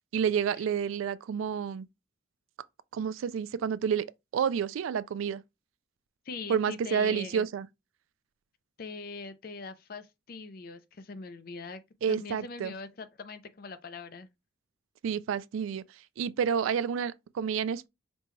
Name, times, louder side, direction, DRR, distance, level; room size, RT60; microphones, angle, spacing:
voice 1, 0.1-1.9 2.9-4.1 4.3-5.4 6.5-7.7 12.0-12.7 15.0-15.8 16.2-17.9, right 7 dB, 85° right, 0.3 m, -29 dB
voice 2, 6.3-7.4 8.8-11.8 12.1-14.3, left 4 dB, 45° left, 0.4 m, -42 dB
5.2 x 2.2 x 3.0 m
head